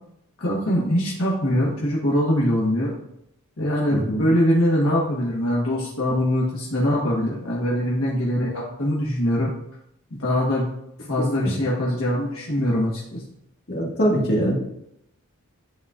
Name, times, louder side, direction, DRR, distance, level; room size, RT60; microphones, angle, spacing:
voice 1, 0.4-2.9 3.6-9.5 10.1-10.7 11.1-13.2, equal, 65° left, -5 dB, 1.2 m, -22 dB
voice 2, 3.9-4.2 11.2-11.5 13.7-14.5, equal, 50° left, -3 dB, 1.8 m, -23 dB
10.0 x 4.0 x 2.4 m, 0.78 s
head